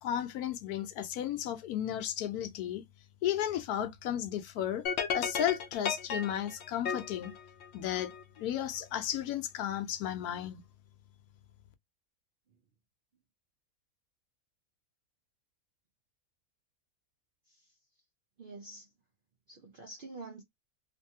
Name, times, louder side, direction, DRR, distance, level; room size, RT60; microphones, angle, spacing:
voice 1, 0.0-2.8 3.2-4.8 5.1-7.3 7.7-8.1 8.4-10.6, left 10 dB, 90° left, 1.1 m, -34 dB
sound 1, 4.8-8.2, left 6 dB, 65° left, 0.7 m, -35 dB
voice 2, 18.4-18.9 19.5-20.4, right 3 dB, 70° right, 0.5 m, -47 dB
2.6 x 2.6 x 2.7 m
omnidirectional pair, 1.6 m